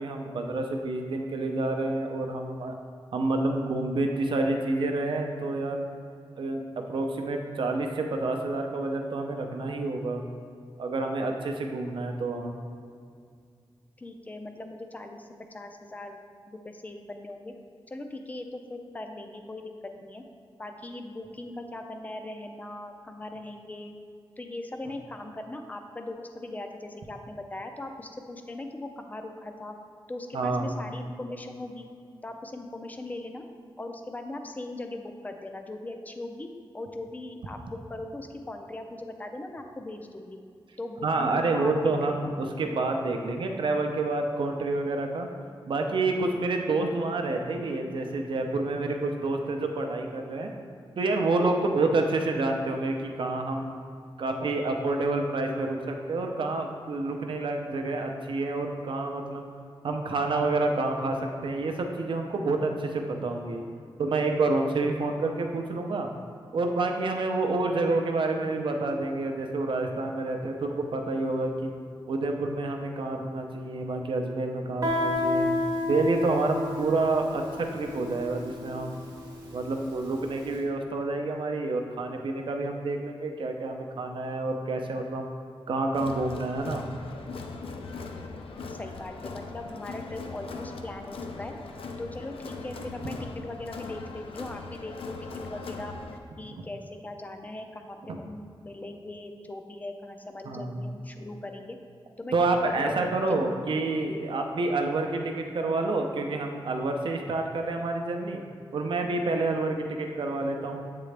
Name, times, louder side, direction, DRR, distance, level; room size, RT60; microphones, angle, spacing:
voice 1, 0.0-2.8 3.1-5.9 6.4-10.2 10.8-12.5 30.3-30.8 41.0-45.3 45.7-50.5 51.0-53.8 54.2-59.5 59.8-63.6 64.0-66.1 66.5-71.7 72.1-75.5 75.9-79.0 79.5-85.3 85.7-86.8 96.5-96.6 98.1-98.2 100.4-100.9 102.3-108.4 108.7-110.8, right 2 dB, 60° right, 3 dB, 0.5 m, -28 dB
voice 2, 14.0-16.2 16.5-17.5 17.9-19.7 20.0-20.2 20.6-23.9 24.4-29.8 30.1-31.9 32.2-33.4 33.8-36.5 36.7-40.4 40.8-42.3 88.7-91.5 92.0-95.2 95.4-95.9 96.4-101.8 102.2-102.3 102.6-103.5, left 2 dB, 15° left, 5 dB, 0.4 m, -39 dB
Guitar, 74.8-80.3, left 2 dB, 45° right, 0.9 m, -31 dB
Crowd, 85.9-96.2, left 3 dB, 80° left, 0.4 m, -40 dB
8.0 x 3.7 x 3.3 m, 2.3 s
wide cardioid pair, 175°, 9 cm